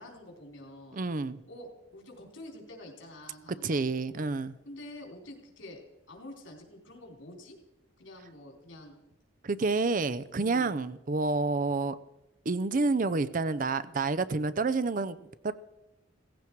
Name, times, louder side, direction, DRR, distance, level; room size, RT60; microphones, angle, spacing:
voice 1, 0.0-1.0 1.5-4.0 4.7-5.8 6.1-7.6 8.0-9.0 10.4-10.8, left 1 dB, 80° left, 2 dB, 3.9 m, -47 dB
voice 2, 0.9-1.4 3.6-4.5 9.4-12.0 12.5-15.2 15.4-15.5, right 3 dB, 45° right, 15 dB, 0.5 m, -29 dB
16.5 x 15.5 x 4.6 m, 0.93 s
head